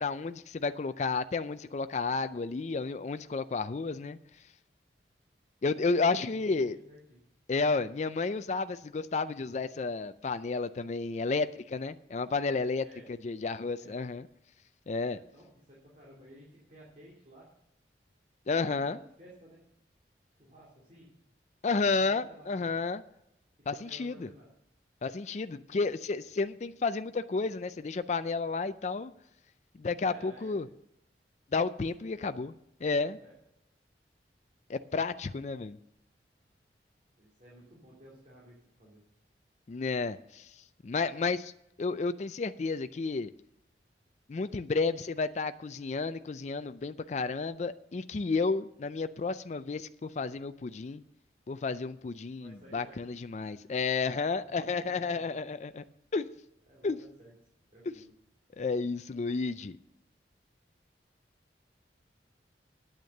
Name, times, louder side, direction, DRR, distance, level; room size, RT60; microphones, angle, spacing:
voice 1, 0.0-4.2 5.6-6.8 7.5-12.8 13.2-14.2 14.9-15.2 18.5-19.0 21.6-23.0 23.7-24.3 25.0-29.1 29.8-30.7 31.5-32.5 32.8-33.2 34.7-35.8 39.7-40.5 40.8-41.5 41.8-43.3 44.3-51.0 51.5-55.8 56.1-56.3 56.8-57.0 58.6-59.8, left 4 dB, 40° left, 11 dB, 0.4 m, -31 dB
voice 2, 6.1-7.2 12.8-13.1 13.8-14.0 15.1-17.5 18.5-19.6 20.3-21.1 21.8-22.7 23.7-24.5 30.0-30.5 32.2-32.4 33.2-33.3 37.2-39.0 52.3-53.2 54.4-55.4 56.7-57.3 57.7-58.1, right 1 dB, 40° right, -6 dB, 3.0 m, -55 dB
9.3 x 8.8 x 6.5 m, 0.81 s
head